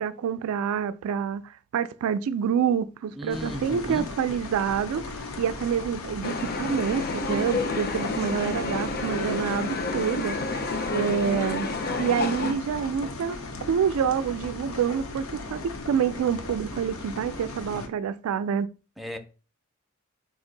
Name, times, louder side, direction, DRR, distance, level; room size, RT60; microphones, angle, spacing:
voice 1, 0.0-10.4 10.9-11.7 12.0-18.7, right 7 dB, 90° right, 0.3 m, -27 dB
voice 2, 3.2-4.1 19.0-19.2, equal, ahead, 0.3 m, -35 dB
sound 1, 3.3-17.9, left 2 dB, 90° left, 0.7 m, -37 dB
sound 2, 6.2-12.5, left 3 dB, 45° left, 0.6 m, -30 dB
4.2 x 2.6 x 3.9 m
head